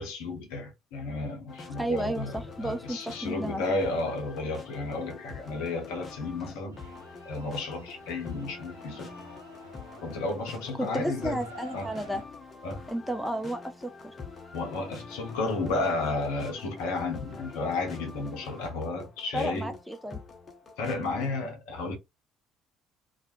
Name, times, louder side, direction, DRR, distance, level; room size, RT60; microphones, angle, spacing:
voice 1, 0.0-6.8 7.2-9.1 10.0-11.4 11.7-11.9 12.6-12.8 14.5-19.8 20.8-22.0, left 3 dB, 65° left, 0.8 m, -32 dB
sound 1, 1.5-21.4, left 4 dB, 35° left, 0.6 m, -46 dB
voice 2, 1.8-3.6 10.8-12.2 12.9-14.1 19.3-20.2, right 1 dB, ahead, 0.4 m, -32 dB
sound 2, 6.7-12.2, right 1 dB, 85° right, 0.4 m, -51 dB
2.3 x 2.0 x 2.8 m
figure-of-eight pair, 50°, 0 cm